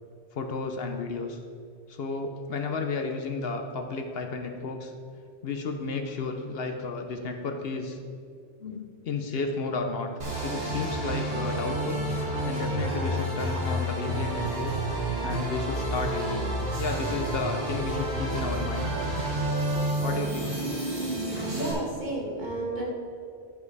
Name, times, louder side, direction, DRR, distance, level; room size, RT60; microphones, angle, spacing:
voice 1, 0.3-1.4 1.9-4.9 5.4-8.0 8.6-10.1 10.4-12.0 12.4-14.7 15.2-16.5 16.8-18.9 20.0-20.6, left 4 dB, 65° left, 4 dB, 0.9 m, -32 dB
sound 1, 10.2-21.7, right 1 dB, 85° right, 2.3 m, -30 dB
voice 2, 21.0-22.9, right 1 dB, 45° right, -3 dB, 1.8 m, -33 dB
10.5 x 5.4 x 4.7 m, 2.3 s
omnidirectional pair, 1.1 m